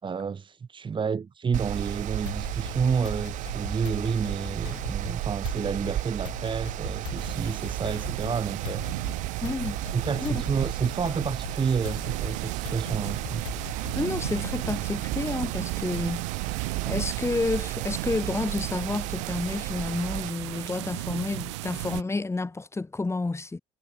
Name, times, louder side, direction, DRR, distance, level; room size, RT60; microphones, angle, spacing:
voice 1, 0.0-8.9 9.9-13.4, right 6 dB, 30° right, 3.3 m, -30 dB
Mechanical fan, 1.5-20.3, right 16 dB, 55° right, 1.1 m, -34 dB
sound 1, 2.3-14.9, left 16 dB, 75° left, 2.0 m, -41 dB
sound 2, 7.2-22.0, right 22 dB, 70° right, 4.9 m, -35 dB
voice 2, 9.4-9.8 10.2-10.4 14.0-16.3 16.9-23.6, left 3 dB, 15° left, 3.5 m, -30 dB
figure-of-eight pair, 55°, 15 cm